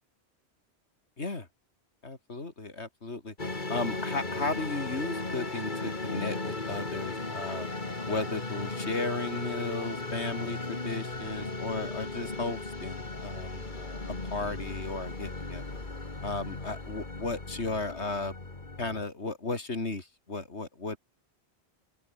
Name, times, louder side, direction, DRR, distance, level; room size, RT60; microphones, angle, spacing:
voice 1, 1.2-1.5 2.0-3.3 3.7-7.7 8.1-15.7 16.2-18.3 18.8-21.0, left 3 dB, 80° left, 3.5 m, -35 dB
sound 1, 3.4-19.0, left 2 dB, 45° left, 2.7 m, -36 dB
open air
omnidirectional pair, 1.1 m